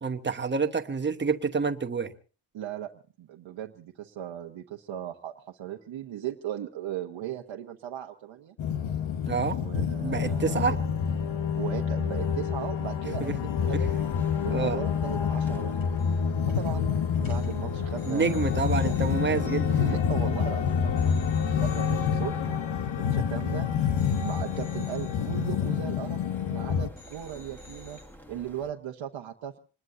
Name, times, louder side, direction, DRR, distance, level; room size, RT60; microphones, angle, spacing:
voice 1, 0.0-2.1 9.3-10.8 13.2-13.3 13.6-13.8 14.5-14.8 18.1-19.7, right 5 dB, 25° right, 1.0 m, -28 dB
voice 2, 2.5-2.9 3.2-8.5 9.5-10.8 11.4-13.9 14.4-15.8 16.5-16.9 17.2-19.0 19.7-21.1 21.6-22.6 23.0-23.7 24.1-26.2 26.5-28.0 28.3-29.6, right 11 dB, 80° right, 1.1 m, -37 dB
sound 1, 8.6-26.9, left 7 dB, 80° left, 1.2 m, -28 dB
sound 2, 13.6-28.7, equal, 5° left, 1.6 m, -50 dB
sound 3, 15.8-16.2 16.5-16.7 17.2-20.5 21.0-23.6 24.0-26.6 27.0-28.0, left 2 dB, 50° left, 6.1 m, -55 dB
26.5 x 20.5 x 2.7 m
wide cardioid pair, 165°, 46 cm